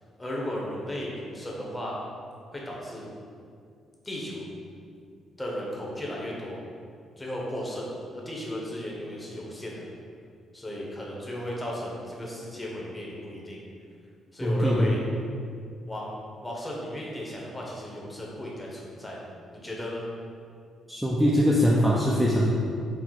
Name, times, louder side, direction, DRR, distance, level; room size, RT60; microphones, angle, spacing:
voice 1, 0.2-2.0 2.5-3.1 4.0-4.5 5.4-6.6 7.2-9.9 10.5-13.6 14.3-15.0 15.9-20.1, left 1 dB, 20° left, -4 dB, 0.9 m, -35 dB
voice 2, 14.4-14.9 20.9-22.5, equal, ahead, -5 dB, 0.4 m, -22 dB
4.4 x 2.0 x 4.0 m, 2.3 s
cardioid pair, 90°, 0 cm